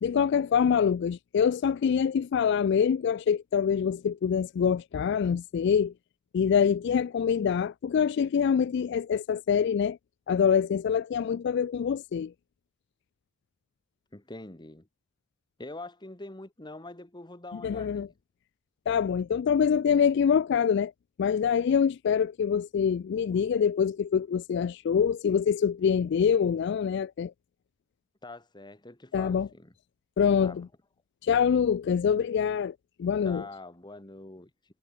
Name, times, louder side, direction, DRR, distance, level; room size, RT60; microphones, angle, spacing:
voice 1, 0.0-5.9 6.3-10.0 10.3-12.3 17.6-18.1 18.9-20.9 21.2-27.3 29.1-29.5 30.2-30.7 31.2-33.4, left 7 dB, 60° left, 0.3 m, -25 dB
voice 2, 14.1-14.9 15.6-18.1 28.2-29.7 30.4-30.7 33.2-34.5, left 2 dB, 25° left, 1.7 m, -44 dB
head